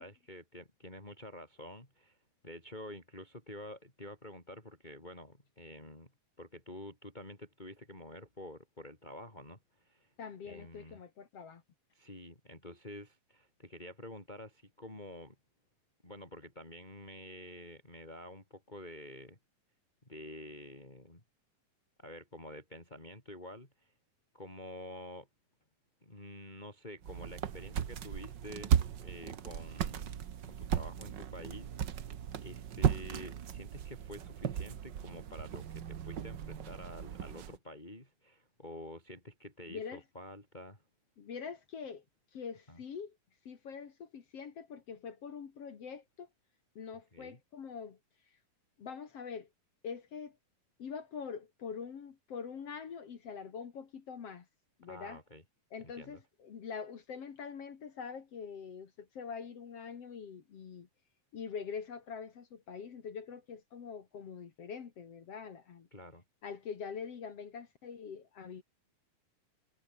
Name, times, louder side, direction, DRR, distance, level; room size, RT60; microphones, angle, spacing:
voice 1, 0.0-2.2 2.4-6.1 6.4-10.1 10.5-11.0 11.9-15.3 16.0-19.4 20.0-21.2 22.0-23.9 24.3-25.3 26.0-28.7 29.0-30.2 30.5-32.1 32.4-40.8 42.7-42.8 47.1-47.4 54.8-55.4 55.8-56.2 65.9-66.2, left 1 dB, 10° left, 5.0 m, -49 dB
voice 2, 10.2-11.6 39.7-40.0 41.2-42.0 42.3-43.2 43.4-46.3 46.8-48.0 48.8-49.5 49.8-50.4 50.8-54.5 54.8-55.2 55.7-60.9 61.3-65.9 66.4-68.6, left 6 dB, 50° left, 2.7 m, -44 dB
sound 1, 27.0-37.6, right 9 dB, 85° right, 0.9 m, -36 dB
omnidirectional pair, 3.9 m